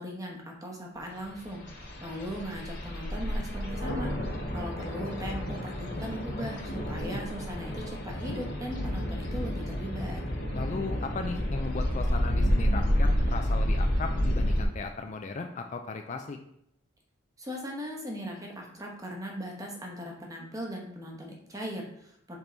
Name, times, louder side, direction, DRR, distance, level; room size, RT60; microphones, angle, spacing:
voice 1, 0.0-4.1 4.5-10.2 17.4-22.4, equal, 15° right, 0 dB, 1.0 m, -39 dB
sound 1, 1.3-14.6, equal, 55° left, 1.6 m, -30 dB
voice 2, 10.5-16.4, left 4 dB, 35° left, 5 dB, 0.3 m, -37 dB
5.4 x 4.5 x 3.9 m, 0.75 s
head